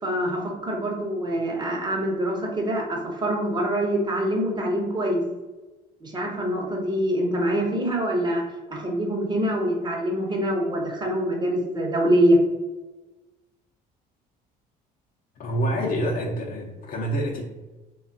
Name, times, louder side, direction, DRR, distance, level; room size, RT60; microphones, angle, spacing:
voice 1, 0.0-5.2 6.0-12.4, equal, 25° right, 0 dB, 0.9 m, -24 dB
voice 2, 15.4-17.4, right 1 dB, 55° left, -2 dB, 0.7 m, -27 dB
3.1 x 2.3 x 3.8 m, 1.1 s
cardioid pair, 110°, 17 cm